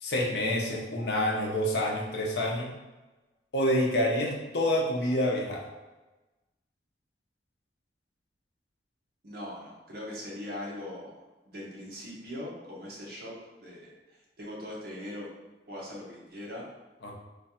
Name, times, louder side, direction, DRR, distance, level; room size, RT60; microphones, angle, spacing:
voice 1, 0.0-2.7 3.5-5.6 17.0-17.1, left 1 dB, 70° left, -1 dB, 0.7 m, -27 dB
voice 2, 9.2-13.3 13.6-15.3 15.7-16.7, left 1 dB, 60° right, -4 dB, 1.0 m, -41 dB
3.3 x 2.3 x 4.2 m, 1.1 s
head